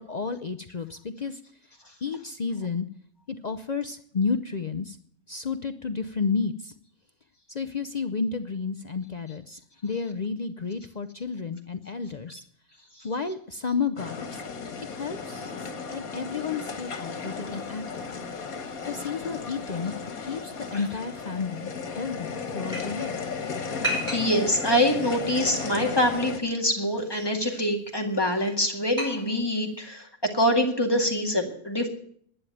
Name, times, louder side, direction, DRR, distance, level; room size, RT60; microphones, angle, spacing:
voice 1, 0.0-1.4 2.0-2.9 3.3-5.0 5.3-6.7 7.5-12.4 13.0-14.4 14.9-18.1 18.8-19.9 20.2-23.2, left 5 dB, 50° left, 8 dB, 0.5 m, -31 dB
sound 1, 14.0-26.4, left 5 dB, 85° left, 1.9 m, -35 dB
sound 2, 16.8-29.8, right 1 dB, 30° right, 4.7 m, -40 dB
voice 2, 24.1-30.0 30.3-31.9, equal, 15° left, 2 dB, 2.1 m, -25 dB
11.0 x 10.5 x 9.2 m, 0.63 s
omnidirectional pair, 1.5 m